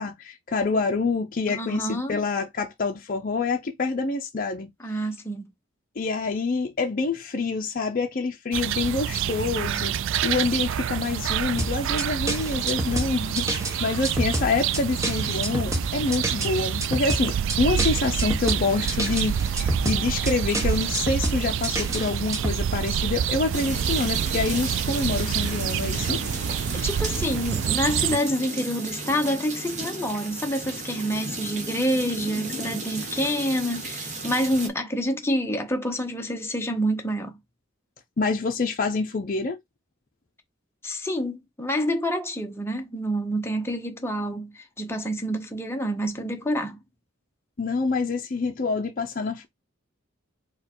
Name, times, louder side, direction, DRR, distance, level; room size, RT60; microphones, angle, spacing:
voice 1, 0.0-4.7 6.0-10.0 10.2-26.2 38.2-39.6 47.6-49.5, left 3 dB, 45° left, 0.5 m, -27 dB
voice 2, 1.5-2.2 4.8-5.5 26.8-37.3 40.8-46.8, equal, 10° left, 0.8 m, -27 dB
sound 1, 8.5-28.2, right 9 dB, 65° right, 0.3 m, -27 dB
sound 2, 11.6-22.6, right 1 dB, 15° right, 0.9 m, -29 dB
sound 3, 23.5-34.7, right 2 dB, 35° right, 1.1 m, -34 dB
4.8 x 2.3 x 4.3 m
head